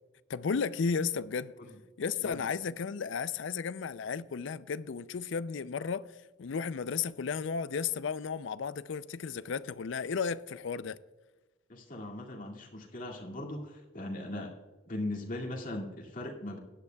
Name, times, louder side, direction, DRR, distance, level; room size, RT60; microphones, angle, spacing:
voice 1, 0.3-1.5 2.0-6.1 6.4-11.0, left 5 dB, 65° left, 0.4 m, -34 dB
voice 2, 11.7-14.5 14.9-16.6, left 1 dB, 40° left, 2.2 m, -39 dB
16.5 x 11.0 x 2.3 m
head